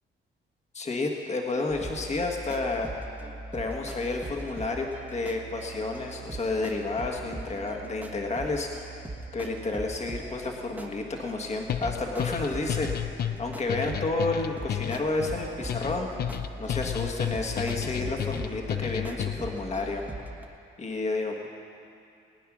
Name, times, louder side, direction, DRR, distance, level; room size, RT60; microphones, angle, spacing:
voice 1, 0.7-2.9 3.5-9.0 9.3-16.3 16.6-20.0 20.8-21.5, left 3 dB, 35° left, 1 dB, 1.6 m, -31 dB
sound 1, 1.7-20.5, right 2 dB, 10° right, 1.4 m, -41 dB
sound 2, 11.7-19.6, left 10 dB, 55° left, 0.6 m, -32 dB
20.5 x 9.3 x 6.2 m, 2.6 s
cardioid pair, 90°, 20 cm